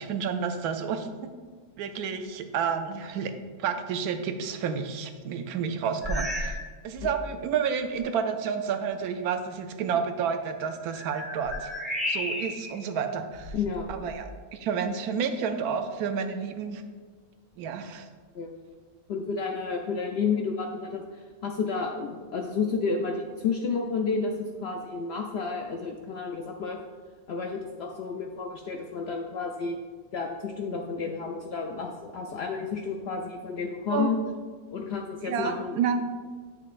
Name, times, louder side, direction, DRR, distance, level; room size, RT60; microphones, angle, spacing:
voice 1, 0.0-1.3 1.8-3.3 3.6-6.6 6.8-11.7 12.1-13.5 13.9-16.8 17.6-18.1 33.9-34.1 35.2-36.0, right 6 dB, 85° right, 7 dB, 1.1 m, -30 dB
sound 1, 6.0-6.7 7.0-7.3 8.0-8.1 10.5-12.8 13.3-14.4, left 1 dB, ahead, 0.9 m, -34 dB
voice 2, 13.5-14.1 18.3-18.5 19.1-26.8 27.3-29.8 30.1-34.2 34.7-35.8, left 5 dB, 70° left, 2 dB, 0.6 m, -31 dB
8.5 x 6.4 x 2.5 m, 1.5 s
omnidirectional pair, 1.5 m